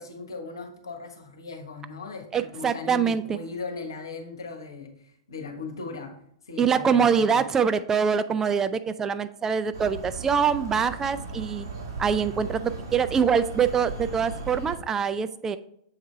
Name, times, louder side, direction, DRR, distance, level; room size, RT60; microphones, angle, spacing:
voice 1, 0.0-6.1 6.4-7.4, left 4 dB, 75° left, 5 dB, 1.2 m, -38 dB
voice 2, 2.3-3.4 6.6-11.7 12.0-15.6, right 6 dB, 20° right, 12 dB, 0.3 m, -24 dB
sound 1, 9.7-14.8, right 3 dB, 60° right, 1.6 m, -37 dB
7.3 x 4.5 x 3.2 m, 0.70 s
figure-of-eight pair, 100°, 2 cm